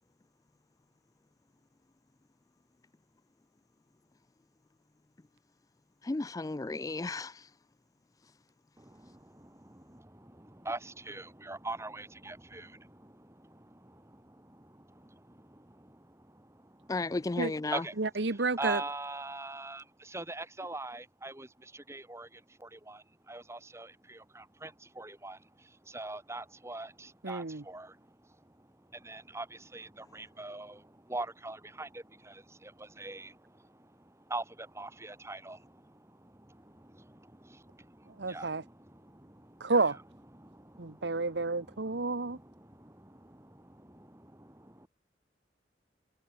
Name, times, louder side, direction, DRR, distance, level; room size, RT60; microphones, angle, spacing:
voice 1, 6.0-7.5 16.9-17.8, left 3 dB, 20° left, 0.4 m, -34 dB
voice 2, 8.8-16.9 17.7-18.0 18.3-39.7 40.3-44.9, right 2 dB, 15° right, 2.8 m, -44 dB
voice 3, 18.0-18.8 27.2-27.6 38.2-38.6 39.6-40.0 40.8-42.4, right 3 dB, 75° right, 1.2 m, -30 dB
head